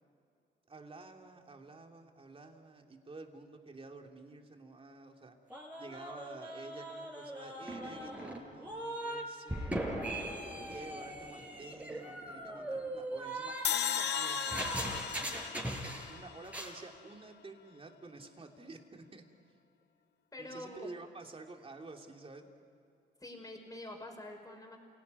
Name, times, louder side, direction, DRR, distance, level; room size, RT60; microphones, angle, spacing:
voice 1, 0.7-5.4 5.8-9.9 10.5-14.7 16.1-19.2 20.4-22.5, right 3 dB, 30° right, 3 dB, 3.0 m, -50 dB
sound 1, 5.5-9.2 9.5-16.2 16.4-16.7, right 1 dB, 5° right, 5.7 m, -40 dB
sound 2, 13.6-16.9, left 11 dB, 60° left, 0.6 m, -36 dB
voice 2, 14.9-15.3 20.3-20.9 23.2-24.8, left 1 dB, 15° left, 2 dB, 5.7 m, -47 dB
28.5 x 17.5 x 9.6 m, 2.7 s
cardioid pair, 90°, 20 cm